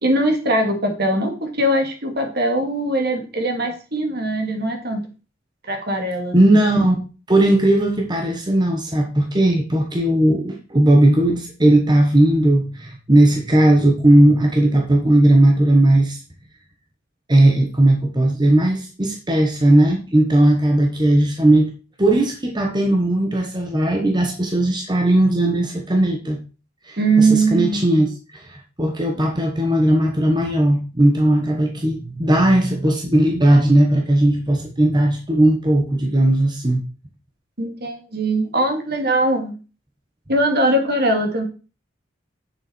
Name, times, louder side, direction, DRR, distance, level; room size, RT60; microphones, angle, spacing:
voice 1, 0.0-5.0 5.7-6.6 27.0-28.1 37.6-39.5 40.3-41.4, right 1 dB, 55° right, 4 dB, 2.6 m, -21 dB
voice 2, 6.3-7.0 7.3-16.2 17.3-21.7 22.0-26.4 26.8-28.1 28.3-36.8, right 1 dB, 20° right, 2 dB, 1.3 m, -17 dB
9.9 x 7.1 x 4.5 m, 0.34 s
head